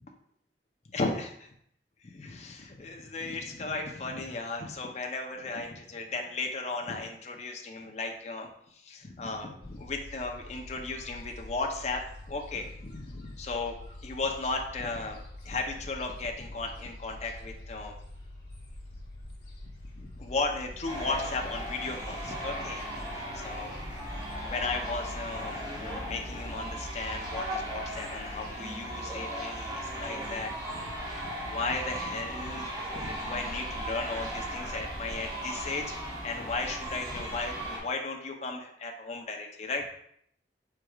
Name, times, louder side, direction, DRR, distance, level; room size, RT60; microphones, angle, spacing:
voice 1, 0.9-1.5 2.0-13.7 14.0-15.2 15.4-18.0 19.9-23.8 24.4-39.9, left 3 dB, 40° left, 2 dB, 0.6 m, -36 dB
Gull seagull, 9.6-28.6, left 1 dB, 60° left, 1.5 m, -46 dB
sound 1, 20.8-37.8, right 1 dB, 20° right, 1.2 m, -37 dB
4.6 x 4.6 x 2.3 m, 0.69 s
head